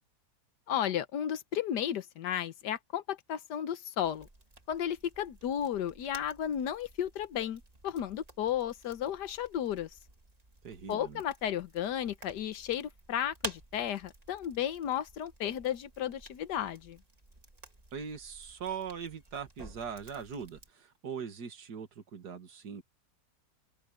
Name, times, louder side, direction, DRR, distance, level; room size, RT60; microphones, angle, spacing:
voice 1, 0.7-4.3 4.7-9.9 10.9-17.0, left 10 dB, 90° left, 1.5 m, -34 dB
sound 1, 4.0-20.7, right 2 dB, 25° right, 2.0 m, -51 dB
voice 2, 10.6-11.2 17.9-22.8, right 6 dB, 75° right, 2.4 m, -41 dB
omnidirectional pair, 1.8 m